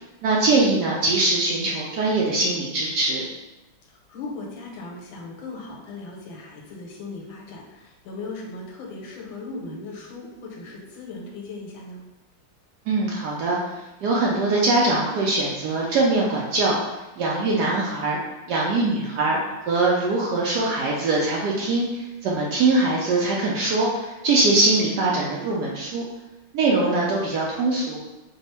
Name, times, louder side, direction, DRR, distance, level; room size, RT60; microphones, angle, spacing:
voice 1, 0.2-3.2 12.9-16.8 17.2-18.2 18.5-19.4 19.7-26.0 26.5-28.0, right 2 dB, 85° right, -4 dB, 0.9 m, -22 dB
voice 2, 3.9-12.0, left 3 dB, 75° left, -1 dB, 1.5 m, -38 dB
3.5 x 2.0 x 4.1 m, 1.0 s
omnidirectional pair, 2.3 m